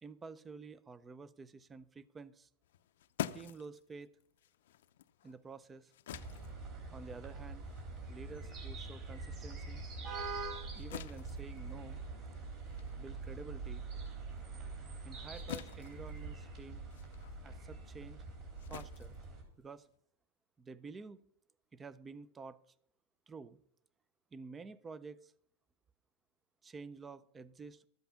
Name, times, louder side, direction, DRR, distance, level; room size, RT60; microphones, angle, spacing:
voice 1, 0.0-2.5 3.3-4.1 5.2-5.9 6.9-7.7 8.1-9.8 10.7-12.0 13.0-13.8 15.0-16.8 17.4-18.2 18.7-19.1 19.6-19.9 20.6-21.2 21.7-22.6 23.3-23.6 24.3-25.3 26.6-27.8, right 4 dB, 10° right, 19 dB, 0.4 m, -50 dB
sound 1, 2.6-9.4 9.8-20.0, left 11 dB, 85° left, 0.6 m, -49 dB
City Ambience, 6.1-19.4, right 3 dB, 35° right, 3.6 m, -44 dB
13.0 x 8.1 x 5.6 m, 0.65 s
supercardioid pair, 170°, 0 cm